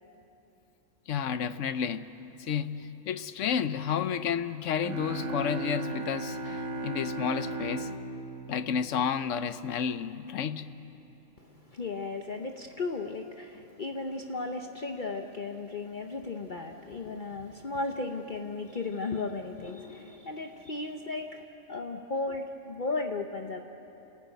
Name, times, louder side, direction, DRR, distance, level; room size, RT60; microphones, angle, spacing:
voice 1, 1.1-2.1 2.4-7.9 8.5-10.7, left 7 dB, 70° left, 12 dB, 1.1 m, -31 dB
sound 1, 4.8-9.5, right 2 dB, 70° right, 1.6 m, -36 dB
voice 2, 11.4-23.6, left 3 dB, 40° left, 4 dB, 0.9 m, -35 dB
28.0 x 15.5 x 9.2 m, 3.0 s
omnidirectional pair, 1.3 m